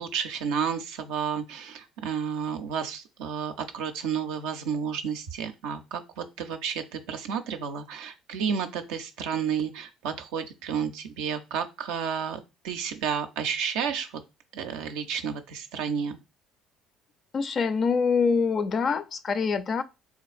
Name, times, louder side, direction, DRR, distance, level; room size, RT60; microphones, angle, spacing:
voice 1, 0.0-14.1 14.5-16.2, right 7 dB, 80° right, 0.4 m, -31 dB
voice 2, 17.3-19.8, left 5 dB, 45° left, 0.4 m, -25 dB
3.9 x 2.4 x 2.5 m
hypercardioid pair, 70°, 0 cm